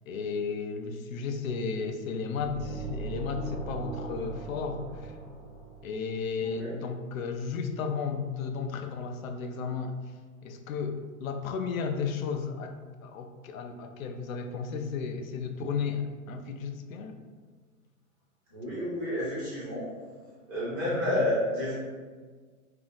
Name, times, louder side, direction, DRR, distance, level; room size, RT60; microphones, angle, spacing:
voice 1, 0.1-5.1 5.8-10.0 10.4-17.2 20.9-21.2, left 5 dB, 75° left, 5 dB, 0.5 m, -34 dB
sound 1, 2.4-6.2, right 3 dB, 15° left, 0.8 m, -39 dB
voice 2, 6.4-6.8 18.5-19.9 20.5-21.8, left 1 dB, 15° right, -9 dB, 0.5 m, -30 dB
2.6 x 2.0 x 3.8 m, 1.5 s
hypercardioid pair, 160°, 42 cm